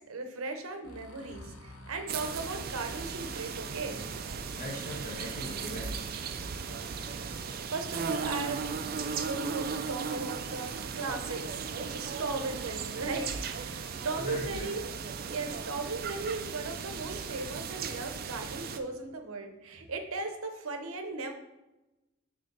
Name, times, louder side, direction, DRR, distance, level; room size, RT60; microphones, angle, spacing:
voice 1, 0.1-4.0 7.7-8.6 9.1-14.8 15.3-21.3, right 3 dB, 75° right, 6 dB, 0.7 m, -37 dB
sound 1, 0.8-14.4, left 1 dB, 85° left, 1.0 m, -51 dB
sound 2, 2.1-18.8, right 6 dB, 45° right, 0.4 m, -37 dB
voice 2, 4.5-6.3 6.9-7.3 14.2-14.8 19.7-19.8, equal, 35° left, -1 dB, 1.3 m, -41 dB
6.0 x 3.2 x 5.3 m, 0.99 s
head